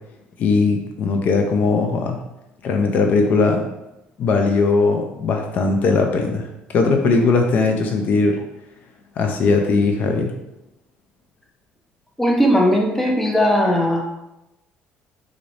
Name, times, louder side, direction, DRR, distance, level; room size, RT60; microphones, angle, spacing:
voice 1, 0.4-2.2 2.6-3.6 4.2-8.4 9.2-10.3, left 4 dB, 50° left, 3 dB, 0.4 m, -19 dB
voice 2, 12.2-14.0, equal, 5° left, 1 dB, 0.6 m, -18 dB
3.9 x 2.6 x 3.2 m, 0.90 s
cardioid pair, 130°, 4 cm